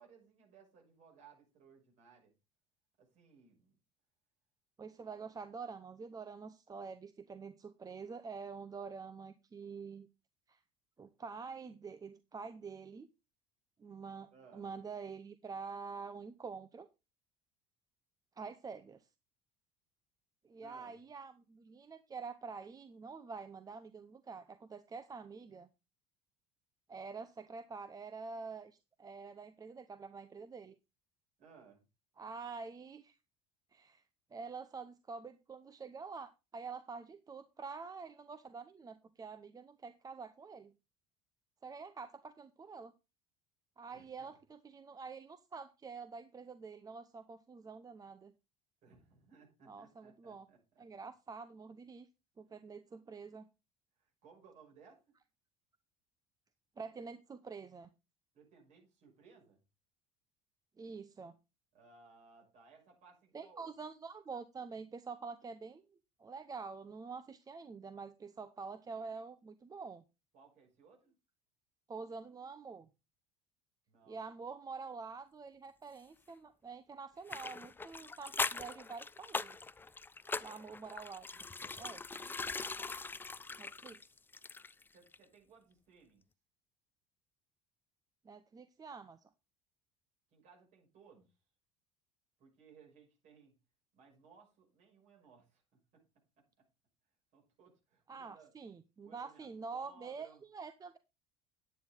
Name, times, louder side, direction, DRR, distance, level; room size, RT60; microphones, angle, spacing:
voice 1, 0.0-2.3 3.0-3.7 14.3-14.7 20.6-21.0 31.4-31.8 43.9-44.4 48.8-50.6 50.9-51.1 54.0-55.0 58.3-59.6 61.7-63.7 70.3-71.1 73.9-74.3 80.2-80.7 81.6-82.4 84.9-86.2 90.3-91.3 92.4-93.6 93.9-96.0 96.4-96.7 97.3-98.5 99.0-100.4, right 5 dB, 55° right, 0 dB, 6.3 m, -62 dB
voice 2, 4.8-10.1 10.5-10.6 11.0-13.1 13.8-16.9 18.4-19.1 20.4-25.7 26.9-30.7 32.2-33.2 33.7-34.0 34.3-40.7 41.6-42.9 43.8-48.3 49.7-50.5 50.8-52.1 52.4-53.5 56.8-57.9 60.8-61.3 63.3-65.8 66.2-70.0 71.9-72.9 74.1-79.6 80.4-81.3 81.8-82.0 83.6-84.0 88.2-89.2 98.1-101.0, right 5 dB, 25° right, 11 dB, 0.8 m, -47 dB
sound 1, 77.3-84.9 85.1-85.2, left 4 dB, 15° left, 0.5 m, -41 dB
9.8 x 9.2 x 3.8 m, 0.27 s
hypercardioid pair, 70°, 15 cm